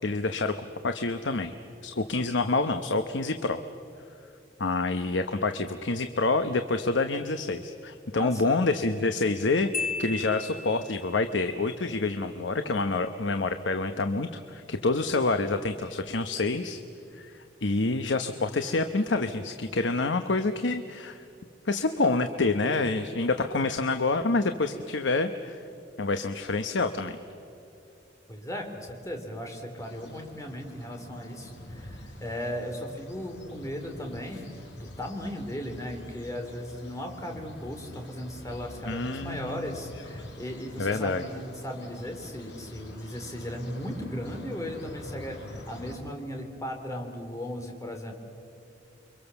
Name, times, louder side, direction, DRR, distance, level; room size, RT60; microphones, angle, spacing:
voice 1, 0.0-0.6 0.8-1.5 1.8-3.6 4.6-9.7 10.0-16.8 17.1-21.2 21.7-25.6 26.0-27.2 38.9-39.7 40.8-41.2, left 3 dB, 90° left, 8 dB, 1.0 m, -27 dB
voice 2, 8.2-8.6 28.3-34.5 34.8-48.1, equal, 20° left, 3 dB, 3.4 m, -37 dB
Marimba xylophone, 9.7-11.2, left 4 dB, 50° left, 1.8 m, -34 dB
sound 1, 29.8-46.0, left 1 dB, 65° left, 5.4 m, -46 dB
29.5 x 24.0 x 7.1 m, 2.7 s
head